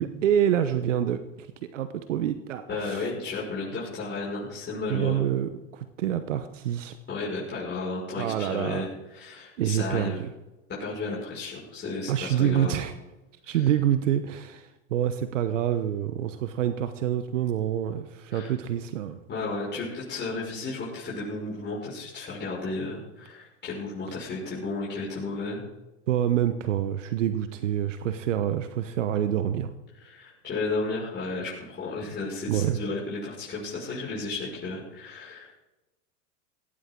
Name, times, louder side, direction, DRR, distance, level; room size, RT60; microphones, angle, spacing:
voice 1, 0.0-1.5 1.7-3.1 4.9-7.0 8.2-8.9 9.6-10.3 12.1-12.9 13.4-19.2 26.1-29.7 32.5-32.8, right 10 dB, 75° right, 10 dB, 1.1 m, -27 dB
voice 2, 2.7-5.2 7.1-8.9 9.1-10.2 10.8-12.8 13.4-13.6 18.3-18.5 19.3-25.6 30.0-35.6, left 3 dB, 30° left, -5 dB, 5.8 m, -33 dB
17.0 x 16.5 x 3.8 m, 1.0 s
hypercardioid pair, 95°, 37 cm